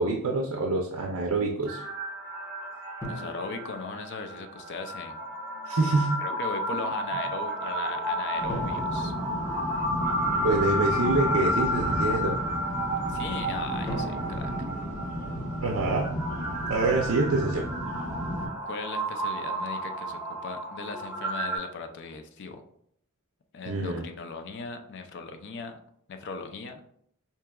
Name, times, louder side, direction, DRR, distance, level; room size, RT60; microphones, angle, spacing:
voice 1, 0.0-1.8 5.7-6.2 10.4-12.4 15.6-16.1 16.7-17.7 23.7-24.0, right 2 dB, 75° right, 2 dB, 0.5 m, -26 dB
sound 1, 1.7-21.6, right 1 dB, 15° right, 0.9 m, -32 dB
voice 2, 3.0-5.2 6.2-9.1 13.1-14.5 18.7-22.6 23.5-25.8 26.1-26.8, left 4 dB, 55° left, 6 dB, 0.4 m, -38 dB
sound 2, 3.0-4.6 8.5-10.4 13.9-16.1, equal, 15° left, 0.6 m, -41 dB
sound 3, 8.4-18.5, equal, 35° left, 1.1 m, -34 dB
4.6 x 2.8 x 2.2 m, 0.71 s
head